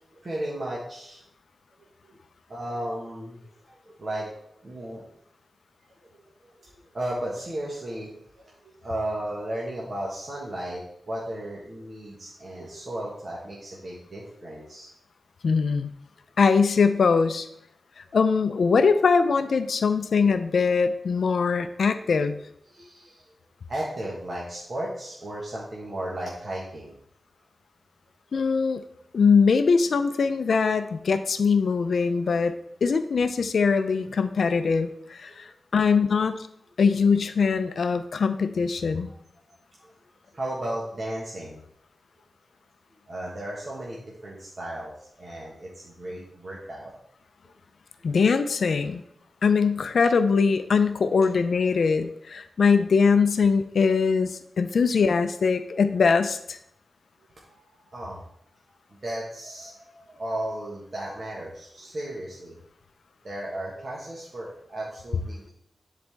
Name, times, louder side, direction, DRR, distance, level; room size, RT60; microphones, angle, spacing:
voice 1, 0.2-1.2 2.0-2.2 2.5-5.1 6.4-10.8 11.1-14.9 22.7-23.2 23.7-26.9 39.1-39.2 39.8-39.9 40.3-41.6 43.1-44.9 45.2-46.9 57.4-58.2 58.9-62.6 63.2-65.5, right 1 dB, 45° right, -4 dB, 1.4 m, -35 dB
voice 2, 15.4-15.9 16.4-17.5 18.0-22.4 28.3-28.8 29.1-32.5 32.8-36.3 36.8-39.1 48.0-49.0 49.4-56.6, left 5 dB, 70° left, 10 dB, 0.5 m, -22 dB
10.5 x 4.1 x 3.5 m, 0.73 s
wide cardioid pair, 135°, 0 cm